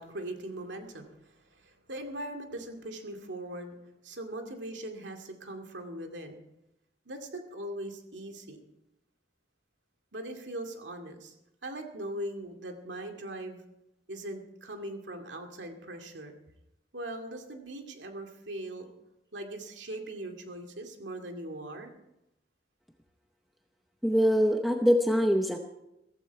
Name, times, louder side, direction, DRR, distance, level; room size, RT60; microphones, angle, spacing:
voice 1, 0.0-3.8 4.0-6.4 7.1-8.6 10.1-11.3 11.6-13.6 14.1-16.3 16.9-18.9 19.3-21.9, right 1 dB, 85° right, 4 dB, 2.3 m, -40 dB
voice 2, 24.0-25.6, equal, ahead, 3 dB, 0.8 m, -23 dB
15.0 x 15.0 x 4.7 m, 0.88 s
head